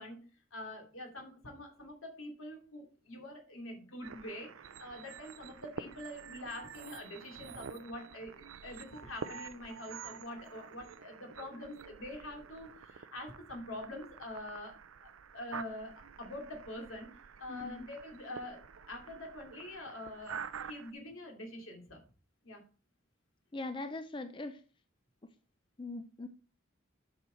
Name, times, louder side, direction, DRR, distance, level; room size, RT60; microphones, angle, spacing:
voice 1, 0.0-4.5 4.8-14.8 15.3-22.0 22.4-22.6, left 1 dB, 80° left, 2 dB, 2.7 m, -45 dB
sound 1, 4.0-20.9, right 6 dB, 90° right, 0.6 m, -48 dB
voice 2, 17.5-17.9 23.5-24.6 25.8-26.3, left 2 dB, 25° left, 9 dB, 0.5 m, -40 dB
8.1 x 6.2 x 4.3 m, 0.37 s
head